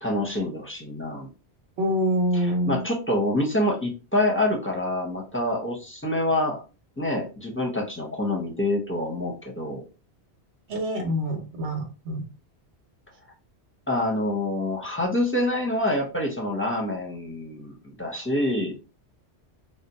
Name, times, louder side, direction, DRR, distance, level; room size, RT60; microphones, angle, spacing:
voice 1, 0.0-1.3 2.4-6.6 7.0-9.8 13.9-18.8, left 1 dB, 15° left, 0 dB, 0.6 m, -26 dB
voice 2, 1.8-2.8 10.7-12.2, equal, 80° right, 3 dB, 1.0 m, -26 dB
2.6 x 2.1 x 4.0 m, 0.32 s
omnidirectional pair, 1.1 m